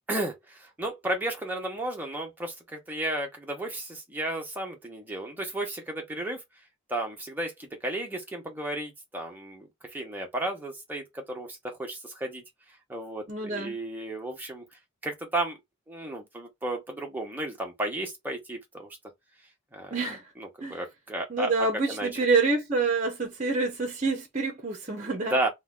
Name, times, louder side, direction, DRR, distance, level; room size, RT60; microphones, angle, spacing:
voice 1, 0.1-6.4 6.9-12.4 12.9-14.6 15.0-15.6 15.9-19.0 19.7-19.9 20.4-21.5 21.9-22.1 25.0-25.5, right 1 dB, 10° right, 0.8 m, -33 dB
voice 2, 13.3-13.8 19.9-20.3 20.6-20.8 21.3-25.5, right 3 dB, 35° right, 0.6 m, -27 dB
2.7 x 2.2 x 3.5 m
head